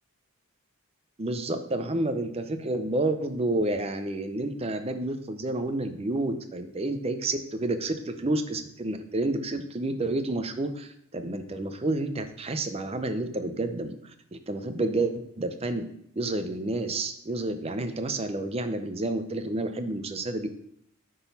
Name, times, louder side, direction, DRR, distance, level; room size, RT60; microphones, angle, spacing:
voice 1, 1.2-13.9 14.3-15.9 16.2-20.5, right 2 dB, 30° right, 8 dB, 0.5 m, -30 dB
10.0 x 3.9 x 4.0 m, 0.71 s
head